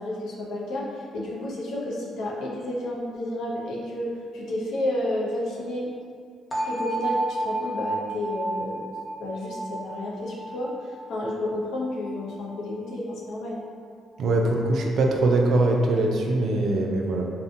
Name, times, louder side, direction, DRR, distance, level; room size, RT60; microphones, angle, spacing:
voice 1, 0.0-5.9 6.6-8.9 9.2-13.6, left 1 dB, 80° left, -4 dB, 0.5 m, -31 dB
sound 1, 6.5-12.3, right 2 dB, 20° left, 0.6 m, -31 dB
voice 2, 14.2-17.2, right 2 dB, 65° right, 1 dB, 0.3 m, -22 dB
2.7 x 2.1 x 2.6 m, 2.1 s
cardioid pair, 90°, 0 cm